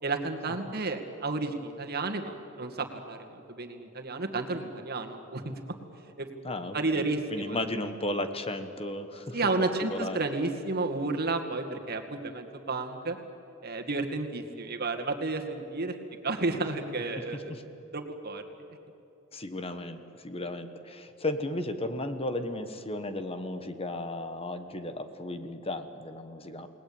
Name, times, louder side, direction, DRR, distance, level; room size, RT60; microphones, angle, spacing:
voice 1, 0.0-5.4 6.2-6.3 6.7-7.6 9.3-13.2 13.6-15.9 16.2-17.5 17.9-18.4, right 3 dB, 50° right, 4 dB, 2.2 m, -32 dB
voice 2, 6.4-9.5 9.9-10.2 17.2-17.6 19.3-26.7, left 1 dB, 30° left, 9 dB, 1.3 m, -35 dB
29.0 x 19.5 x 8.9 m, 2.9 s
head